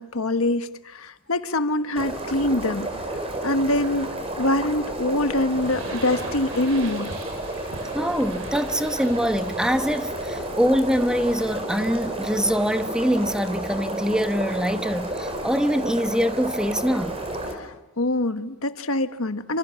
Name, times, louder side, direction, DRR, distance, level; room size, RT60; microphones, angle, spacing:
voice 1, 0.0-4.1 4.4-7.1 17.5-19.6, left 1 dB, 75° left, 1.5 m, -25 dB
sound 1, 2.0-17.5, right 1 dB, 25° right, 5.1 m, -31 dB
sound 2, 5.5-12.2, right 2 dB, 60° right, 4.5 m, -42 dB
voice 2, 7.9-17.2, equal, 5° right, 1.0 m, -24 dB
29.5 x 27.0 x 7.1 m
head